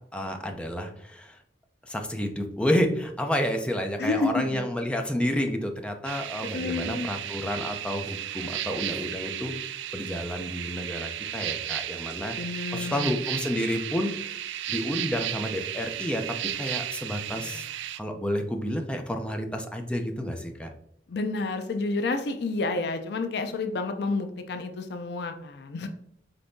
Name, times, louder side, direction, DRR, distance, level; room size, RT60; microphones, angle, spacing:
voice 1, 0.1-1.4 1.8-12.4 12.7-14.4 14.7-16.2 16.5-17.6 18.0-20.7, equal, 5° left, 4 dB, 0.5 m, -30 dB
voice 2, 4.0-4.6 6.4-7.1 12.4-13.1 17.3-17.6 21.1-25.9, left 3 dB, 65° left, 7 dB, 0.5 m, -30 dB
sound 1, 6.0-18.0, right 11 dB, 90° right, 0.3 m, -34 dB
5.2 x 3.4 x 2.6 m, 0.76 s
head